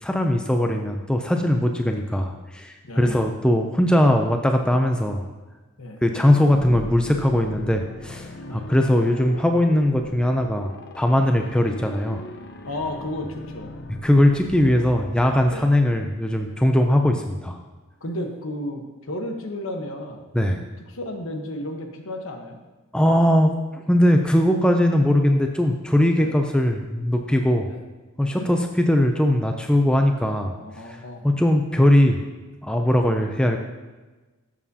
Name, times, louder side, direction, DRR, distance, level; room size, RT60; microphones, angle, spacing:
voice 1, 0.0-5.3 6.0-12.2 14.0-17.6 20.3-20.6 22.9-27.7 28.2-30.6 30.9-31.0 31.2-32.2 32.6-33.6, left 1 dB, 5° left, 4 dB, 0.4 m, -20 dB
voice 2, 2.8-3.2 5.8-6.0 8.5-8.7 12.6-13.8 15.5-15.7 18.0-20.3 20.9-22.6 26.1-26.3 27.7-27.8 28.3-28.5 30.6-31.3 33.0-33.2, left 1 dB, 70° left, 3 dB, 1.1 m, -33 dB
sound 1, 6.4-16.1, left 3 dB, 50° left, 0.6 m, -40 dB
12.5 x 7.2 x 2.8 m, 1.2 s
head